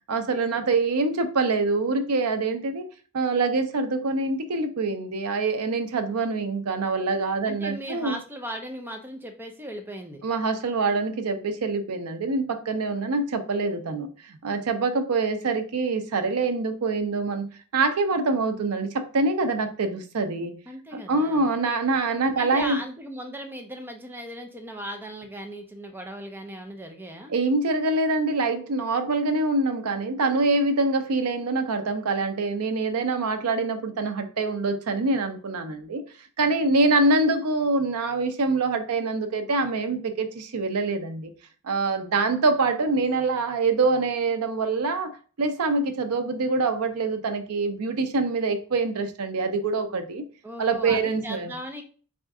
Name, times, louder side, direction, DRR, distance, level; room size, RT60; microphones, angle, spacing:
voice 1, 0.1-2.9 3.1-8.2 10.2-17.5 17.7-20.5 20.9-22.8 27.3-36.0 36.4-41.3 41.6-50.3 50.6-51.5, right 3 dB, 90° right, 0.6 m, -25 dB
voice 2, 7.4-10.2 20.7-21.5 22.3-27.3 50.4-51.8, equal, 10° right, 0.5 m, -37 dB
4.2 x 2.5 x 3.5 m
head